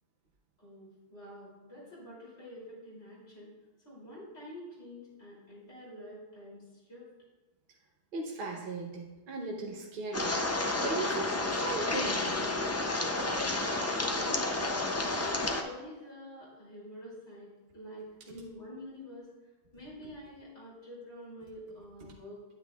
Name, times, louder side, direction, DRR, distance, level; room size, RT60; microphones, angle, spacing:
voice 1, 0.6-3.5 3.8-7.1 14.0-14.6 15.1-19.3 19.7-22.4, equal, 75° left, -7 dB, 3.3 m, -47 dB
voice 2, 8.1-10.4 10.8-12.6, right 2 dB, 55° right, 0 dB, 1.0 m, -37 dB
sound 1, 10.1-15.6, left 2 dB, 25° left, 0.3 m, -31 dB
9.2 x 9.2 x 2.3 m, 1.1 s
omnidirectional pair, 1.1 m